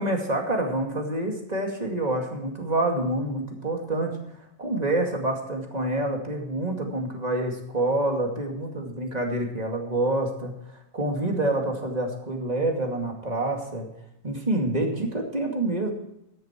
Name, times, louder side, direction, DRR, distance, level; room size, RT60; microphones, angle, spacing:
voice 1, 0.0-4.1 4.6-10.5 10.9-13.9 14.2-15.9, right 1 dB, 30° right, 2 dB, 2.5 m, -27 dB
14.0 x 10.5 x 4.5 m, 0.82 s
omnidirectional pair, 1.4 m